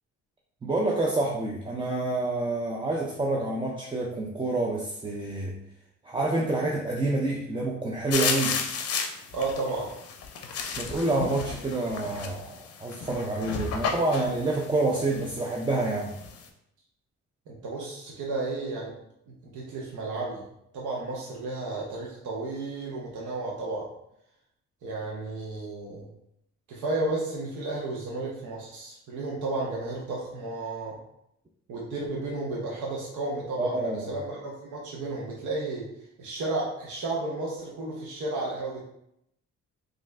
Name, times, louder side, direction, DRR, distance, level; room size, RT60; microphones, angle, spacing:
voice 1, 0.6-5.6 6.0-8.6 10.8-16.2 33.6-34.2, right 2 dB, 15° right, -2 dB, 0.4 m, -28 dB
sound 1, 8.1-16.4, left 5 dB, 55° left, 0.6 m, -33 dB
voice 2, 9.3-10.0 17.5-19.0 19.3-20.4 20.7-23.9 24.8-26.1 26.7-31.0 31.7-35.9 36.2-38.8, right 2 dB, 75° right, -4 dB, 0.8 m, -33 dB
3.2 x 2.5 x 3.2 m, 0.77 s
cardioid pair, 90°, 30 cm